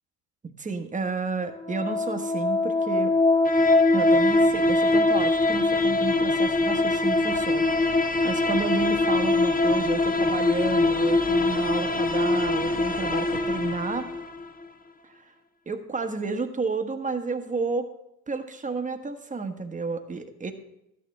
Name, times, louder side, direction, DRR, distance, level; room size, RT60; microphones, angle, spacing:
voice 1, 0.6-3.1 3.9-14.1 15.0-15.3 15.7-17.9 18.3-20.5, right 4 dB, 15° right, 7 dB, 1.2 m, -31 dB
sound 1, 1.5-14.5, left 2 dB, 20° left, 0.8 m, -22 dB
12.0 x 9.4 x 3.3 m, 0.81 s
hypercardioid pair, 75°, 47 cm